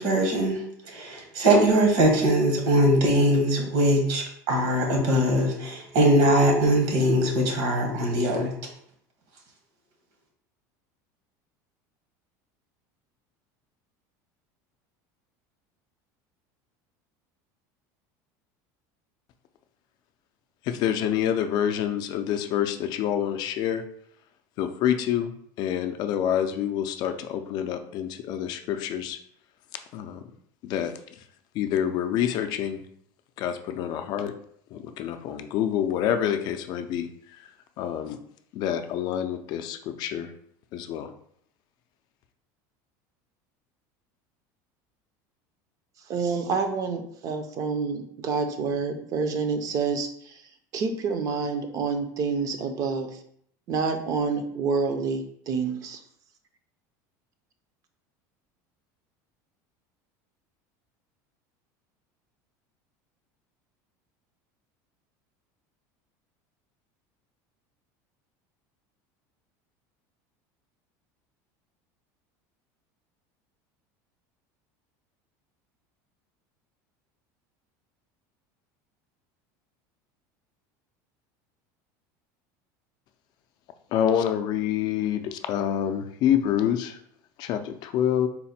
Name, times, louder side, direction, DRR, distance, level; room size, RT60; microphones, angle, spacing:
voice 1, 0.0-8.5, right 1 dB, 70° right, 1 dB, 1.3 m, -21 dB
voice 2, 20.6-23.8 24.6-29.2 29.9-30.2 30.6-30.9 31.5-32.8 33.4-34.3 34.7-37.1 37.8-38.2 38.5-40.3 40.7-41.1 83.9-87.0 87.4-88.3, left 10 dB, 50° left, 7 dB, 0.4 m, -27 dB
voice 3, 46.1-50.4 50.7-53.2 53.7-56.0, right 5 dB, 40° right, 6 dB, 0.5 m, -28 dB
4.0 x 2.1 x 4.1 m, 0.67 s
cardioid pair, 145°, 9 cm